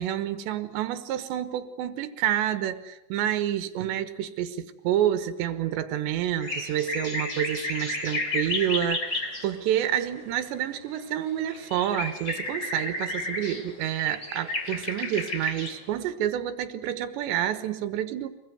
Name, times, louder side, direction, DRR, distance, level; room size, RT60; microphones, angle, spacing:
voice 1, 0.0-18.3, right 11 dB, 90° right, 10 dB, 3.5 m, -28 dB
sound 1, 6.4-9.5 10.0-10.1 10.9-11.0 11.3-15.8, left 2 dB, 30° left, 3.2 m, -32 dB
25.5 x 20.0 x 9.3 m, 0.94 s
omnidirectional pair, 5.0 m